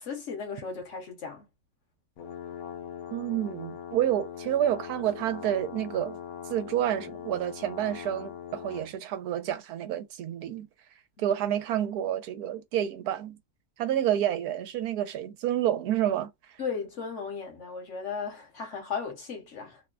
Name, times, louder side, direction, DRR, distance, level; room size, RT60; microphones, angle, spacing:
voice 1, 0.0-1.5 11.2-11.3 16.6-19.8, left 5 dB, 55° left, 1.2 m, -36 dB
sound 1, 2.2-8.9, left 8 dB, 70° left, 1.0 m, -41 dB
voice 2, 3.1-6.2 6.5-10.7 11.2-13.4 13.8-16.3, right 11 dB, 85° right, 1.2 m, -29 dB
2.8 x 2.1 x 2.3 m
omnidirectional pair, 1.6 m